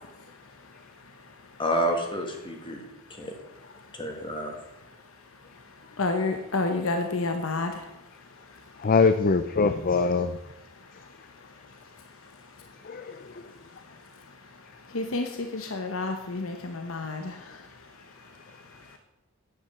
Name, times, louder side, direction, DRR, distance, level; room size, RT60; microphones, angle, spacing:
voice 1, 1.6-2.8 3.1-3.3 3.9-4.6, equal, 25° left, 1.8 m, -29 dB
voice 2, 6.0-7.7 14.9-17.3, left 3 dB, 70° left, 1.0 m, -29 dB
voice 3, 8.8-10.4 12.8-13.2, left 4 dB, 40° left, 0.5 m, -23 dB
9.9 x 9.4 x 5.9 m
head